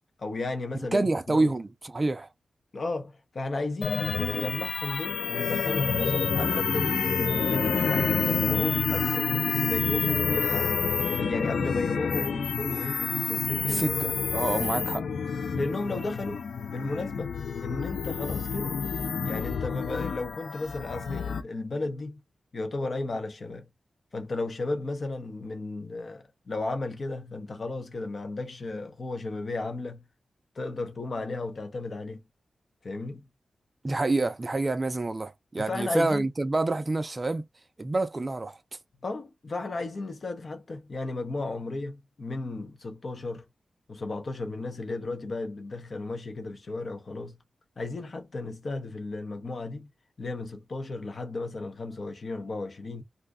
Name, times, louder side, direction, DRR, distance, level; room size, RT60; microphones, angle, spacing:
voice 1, 0.2-1.5 2.7-7.1 7.4-10.8 11.2-13.9 14.5-14.7 15.5-16.4 16.7-18.8 19.2-22.2 22.5-23.7 24.1-30.1 30.5-32.2 32.8-33.2 35.6-36.3 39.0-43.4 43.9-47.4 47.8-49.9 50.2-53.0, left 2 dB, 45° left, 0.8 m, -34 dB
voice 2, 0.9-2.3 13.6-15.0 33.8-37.5 37.8-38.6, right 2 dB, 25° right, 0.5 m, -27 dB
sound 1, 3.8-21.4, left 6 dB, 85° left, 0.5 m, -28 dB
2.5 x 2.3 x 3.5 m
wide cardioid pair, 130°, 0 cm